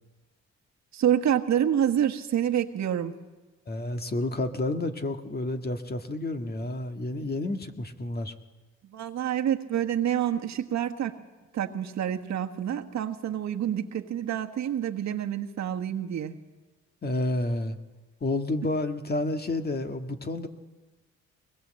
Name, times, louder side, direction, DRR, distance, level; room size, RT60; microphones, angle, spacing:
voice 1, 0.9-3.1 8.8-11.1 11.5-16.3, right 10 dB, 65° right, 5 dB, 1.6 m, -27 dB
voice 2, 3.7-8.3 17.0-17.8 18.2-20.5, left 2 dB, 30° left, 6 dB, 1.8 m, -30 dB
22.5 x 20.5 x 7.7 m, 1.2 s
cardioid pair, 90°, 30 cm